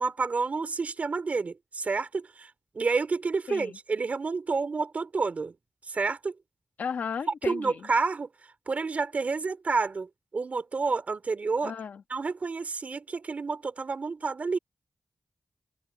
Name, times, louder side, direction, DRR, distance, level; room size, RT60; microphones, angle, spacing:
voice 1, 0.0-2.5 2.7-5.5 5.9-6.3 7.5-8.3 8.7-11.7 12.1-14.6, right 4 dB, 60° right, 2.7 m, -29 dB
voice 2, 3.5-3.8 6.8-7.9 11.6-12.0, left 6 dB, 90° left, 1.7 m, -35 dB
cardioid pair, 55°, 3 cm